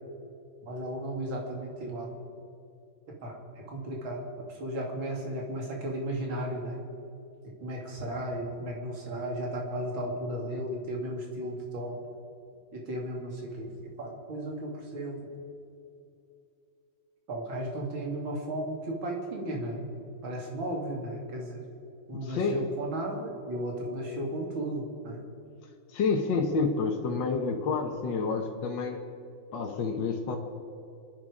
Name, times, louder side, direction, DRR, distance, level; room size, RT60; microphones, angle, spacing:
voice 1, 0.6-2.1 3.2-6.8 7.6-12.0 12.7-15.2 17.3-19.9 20.2-21.6 22.1-25.2, right 1 dB, 65° right, 0 dB, 3.2 m, -35 dB
voice 2, 22.2-22.6 25.9-29.0 29.5-30.4, left 4 dB, 65° left, 2 dB, 1.8 m, -29 dB
28.5 x 10.0 x 5.0 m, 2.6 s
omnidirectional pair, 2.3 m